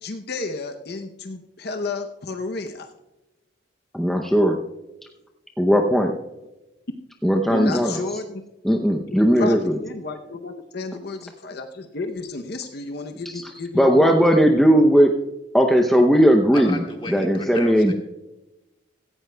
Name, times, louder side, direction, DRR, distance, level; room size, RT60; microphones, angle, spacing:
voice 1, 0.0-2.9 7.5-8.4 9.4-14.3, left 3 dB, 60° left, 6 dB, 0.7 m, -31 dB
voice 2, 3.9-4.6 5.6-6.1 7.2-8.0 8.6-9.8 13.3-13.4 13.7-15.1 15.5-16.8 17.1-17.9, equal, ahead, 2 dB, 0.6 m, -17 dB
voice 3, 16.5-17.9, left 3 dB, 30° left, 2 dB, 1.7 m, -35 dB
17.0 x 14.5 x 2.2 m, 0.98 s
head